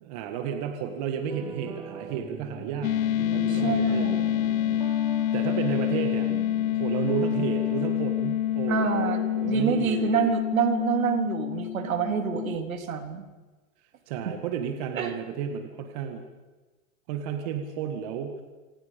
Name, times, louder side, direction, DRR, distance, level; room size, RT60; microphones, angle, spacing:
voice 1, 0.0-4.1 5.3-6.3 6.7-10.3 14.1-16.2 17.1-18.4, right 8 dB, 25° right, 6 dB, 1.8 m, -32 dB
sound 1, 1.3-7.9, right 6 dB, 10° right, 1.3 m, -41 dB
sound 2, 2.8-12.6, left 12 dB, 65° left, 0.7 m, -27 dB
voice 2, 3.5-4.3 8.7-13.3 14.9-15.1, right 9 dB, 70° right, 6 dB, 3.8 m, -27 dB
27.5 x 25.0 x 5.3 m, 1.2 s
hypercardioid pair, 170°, 43 cm